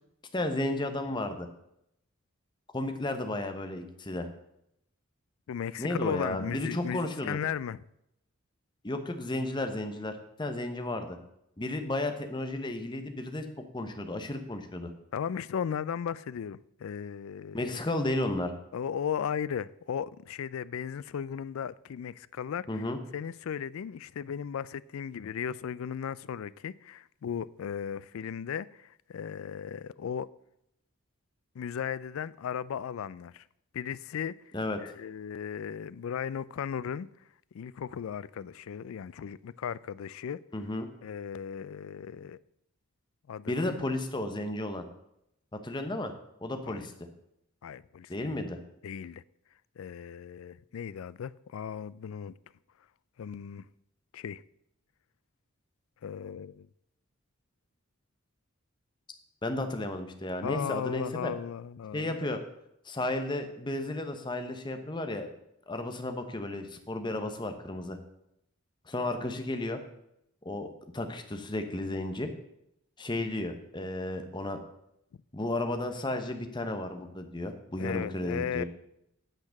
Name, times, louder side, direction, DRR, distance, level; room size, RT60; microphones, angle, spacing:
voice 1, 0.3-1.5 2.7-4.3 5.8-7.4 8.8-10.1 10.4-11.2 11.6-13.4 13.7-14.9 17.5-18.5 22.7-23.0 34.5-34.8 40.5-40.9 43.5-44.8 45.5-46.1 46.4-46.9 48.1-48.6 59.4-61.3 61.9-62.4 62.8-65.3 65.7-68.0 68.9-69.8 70.4-70.7 70.9-72.3 73.0-74.6 75.3-78.6, left 1 dB, 20° left, 0.9 m, -33 dB
voice 2, 5.5-7.8 15.1-17.8 18.7-22.9 23.1-30.3 31.6-33.4 33.7-34.3 34.8-37.1 37.5-40.4 41.0-42.4 43.3-43.8 46.7-46.9 47.6-48.4 48.8-49.2 49.8-52.3 53.2-53.7 54.1-54.4 56.0-56.7 60.4-62.2 77.8-78.6, left 8 dB, 75° left, 0.3 m, -36 dB
9.1 x 5.9 x 6.4 m
head